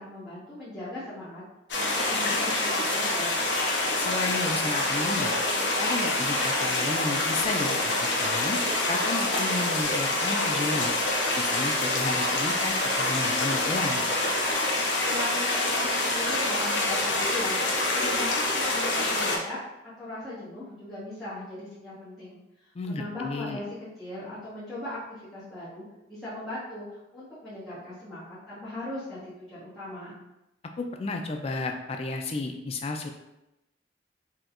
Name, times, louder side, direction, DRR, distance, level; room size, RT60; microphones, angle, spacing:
voice 1, 0.0-1.4 1.7-3.3 15.0-19.6 20.0-22.4 22.9-23.6 24.0-30.2, left 1 dB, ahead, -14 dB, 0.9 m, -38 dB
sound 1, 1.7-19.4, left 2 dB, 70° left, 0.7 m, -26 dB
voice 2, 4.0-5.3 5.8-8.6 8.9-10.9 11.4-14.0 22.7-23.6 30.8-33.1, left 3 dB, 35° left, 3 dB, 0.3 m, -32 dB
4.2 x 2.3 x 2.4 m, 0.91 s
head